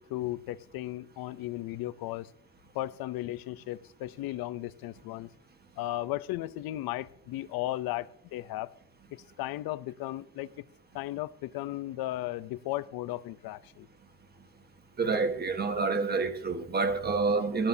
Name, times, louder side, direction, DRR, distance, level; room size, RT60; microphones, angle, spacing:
voice 1, 0.0-2.3 2.7-5.3 5.8-8.7 9.1-10.5 10.9-13.9, left 15 dB, 90° left, 0.7 m, -35 dB
voice 2, 15.0-17.7, right 4 dB, 25° right, 1.4 m, -28 dB
18.5 x 13.0 x 2.8 m
cardioid pair, 135°, 35 cm